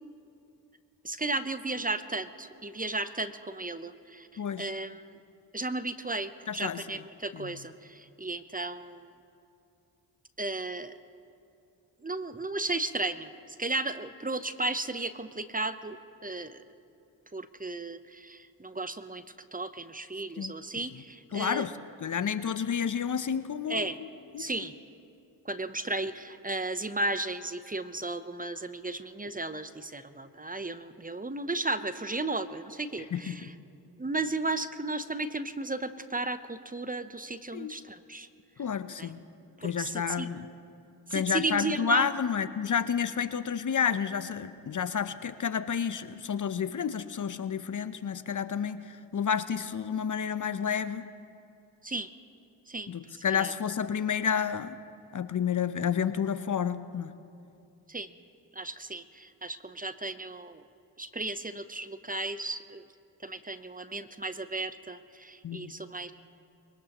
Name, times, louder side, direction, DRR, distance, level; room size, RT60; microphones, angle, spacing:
voice 1, 1.0-4.3 4.6-5.1 5.5-9.1 10.4-10.9 12.0-16.0 16.2-16.6 17.3-19.2 19.5-21.6 23.7-24.0 24.4-24.7 25.4-33.5 34.0-38.3 39.0-39.1 39.6-40.3 41.1-42.1 51.8-52.1 52.7-53.5 57.9-58.1 58.5-60.6 61.0-62.8 63.2-66.1, right 2 dB, 20° right, 12 dB, 0.8 m, -34 dB
voice 2, 4.4-4.7 6.5-6.8 7.3-7.5 20.4-20.5 21.3-24.1 24.3-24.7 33.1-33.5 37.5-37.7 38.6-39.2 39.6-40.5 41.1-51.0 52.9-54.7 55.1-57.1 65.4-65.7, left 7 dB, 40° left, 13 dB, 0.7 m, -30 dB
22.0 x 19.0 x 3.0 m, 2.6 s
supercardioid pair, 40°, 45 cm